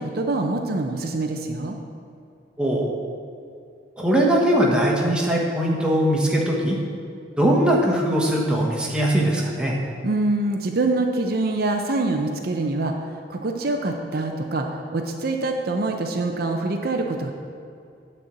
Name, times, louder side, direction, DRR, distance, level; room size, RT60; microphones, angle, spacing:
voice 1, 0.0-1.8 10.0-17.3, right 2 dB, 55° right, 3 dB, 0.6 m, -25 dB
voice 2, 2.6-3.0 4.0-6.8 7.4-9.8, right 1 dB, 5° right, -3 dB, 1.2 m, -20 dB
9.2 x 4.3 x 7.5 m, 2.5 s
head